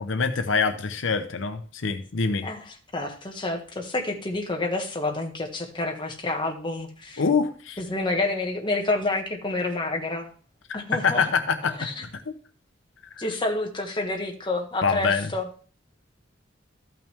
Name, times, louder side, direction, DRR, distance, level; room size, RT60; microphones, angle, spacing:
voice 1, 0.1-2.5 7.2-7.8 11.0-11.9 12.3-12.4 13.1-13.2 14.8-15.3, left 5 dB, 75° left, 8 dB, 0.7 m, -25 dB
voice 2, 2.4-7.2 7.8-10.3 10.7-11.3 11.6-12.1 13.2-15.5, left 2 dB, 25° left, 2 dB, 1.6 m, -29 dB
13.5 x 5.9 x 3.4 m, 0.41 s
head